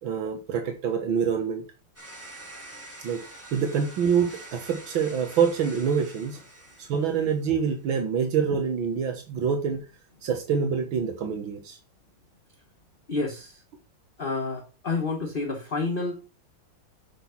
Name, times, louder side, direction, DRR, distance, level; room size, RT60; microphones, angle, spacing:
voice 1, 0.0-1.6 3.0-6.4 6.8-9.9 10.2-11.8, right 6 dB, 85° right, 2.1 m, -26 dB
sound 1, 2.0-7.5, right 1 dB, 5° right, 3.3 m, -46 dB
voice 2, 13.1-13.6 14.2-16.3, left 3 dB, 30° left, 1.3 m, -29 dB
9.0 x 6.1 x 5.7 m
omnidirectional pair, 2.1 m